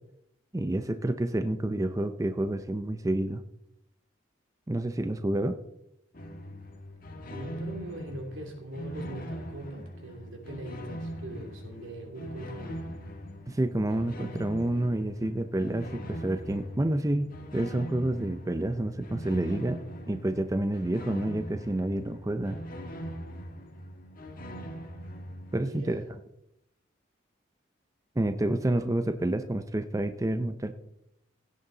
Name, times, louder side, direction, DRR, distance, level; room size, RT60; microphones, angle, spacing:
voice 1, 0.5-3.4 4.7-5.6 13.5-19.8 20.1-22.6 25.5-26.0 28.2-30.7, right 1 dB, 15° right, 9 dB, 0.5 m, -29 dB
sound 1, 6.1-25.6, equal, 45° left, 1.6 m, -41 dB
voice 2, 7.3-12.8 25.6-26.1, right 1 dB, 85° right, 2 dB, 2.8 m, -41 dB
16.5 x 8.4 x 3.9 m, 0.83 s
head